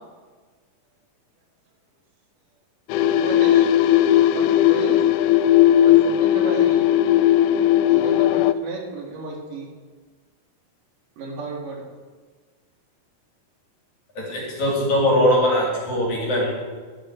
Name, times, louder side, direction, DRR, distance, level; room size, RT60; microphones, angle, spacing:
sound 1, 2.9-8.5, left 11 dB, 80° left, 1.9 m, -17 dB
voice 1, 3.2-3.7 4.4-5.0 5.8-6.8 7.8-9.7 11.2-11.8, right 3 dB, 75° right, 0 dB, 3.5 m, -34 dB
voice 2, 14.2-16.5, equal, 55° left, -3 dB, 4.9 m, -21 dB
14.5 x 10.5 x 5.0 m, 1.4 s
omnidirectional pair, 3.9 m